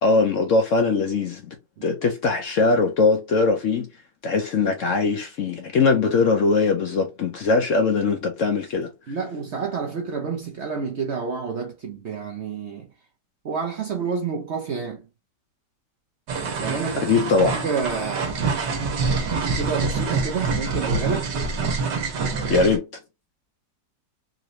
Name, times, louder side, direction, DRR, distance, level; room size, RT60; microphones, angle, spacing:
voice 1, 0.0-1.6 1.8-3.9 4.2-8.9 17.0-17.6 22.5-22.8, left 4 dB, 65° left, 0.8 m, -21 dB
voice 2, 9.1-12.9 13.4-15.0 16.6-17.1 17.5-18.3 19.5-21.3, right 5 dB, 60° right, 0.7 m, -29 dB
sound 1, 16.3-22.8, right 4 dB, 85° right, 1.5 m, -26 dB
3.8 x 2.6 x 3.0 m
omnidirectional pair, 1.8 m